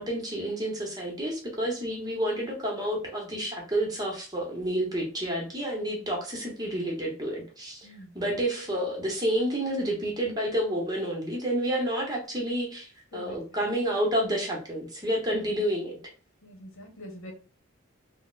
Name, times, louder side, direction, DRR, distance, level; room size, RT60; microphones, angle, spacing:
voice 1, 0.0-7.9 8.1-16.0, right 1 dB, 20° right, 0 dB, 0.8 m, -29 dB
voice 2, 7.8-8.2 13.1-13.7 15.2-15.4 16.4-17.3, left 1 dB, 75° left, 2 dB, 0.9 m, -45 dB
4.0 x 2.0 x 2.4 m, 0.37 s
head